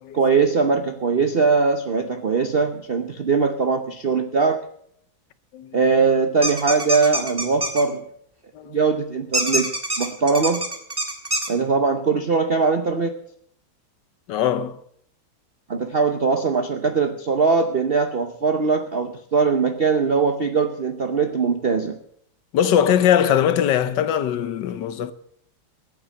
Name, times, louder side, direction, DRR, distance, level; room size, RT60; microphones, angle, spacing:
voice 1, 0.1-4.6 5.7-8.0 8.7-9.7 10.0-10.6 11.5-13.2 15.7-22.0, right 4 dB, 55° right, 0.6 m, -21 dB
sound 1, 6.4-7.8 9.3-11.5, right 1 dB, 10° right, 1.6 m, -25 dB
voice 2, 14.3-14.8 22.5-25.1, left 9 dB, 70° left, 1.3 m, -20 dB
14.5 x 8.7 x 7.5 m
omnidirectional pair, 2.2 m